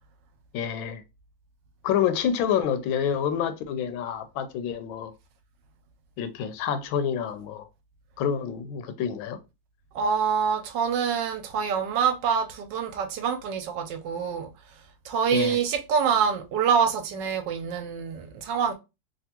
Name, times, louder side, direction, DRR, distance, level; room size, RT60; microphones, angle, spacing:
voice 1, 0.5-1.0 1.8-5.1 6.2-7.7 8.2-9.4 15.3-15.6, left 8 dB, 90° left, 1.4 m, -28 dB
voice 2, 9.9-14.5 15.0-18.7, right 7 dB, 75° right, 1.2 m, -26 dB
3.4 x 2.4 x 2.8 m
omnidirectional pair, 2.1 m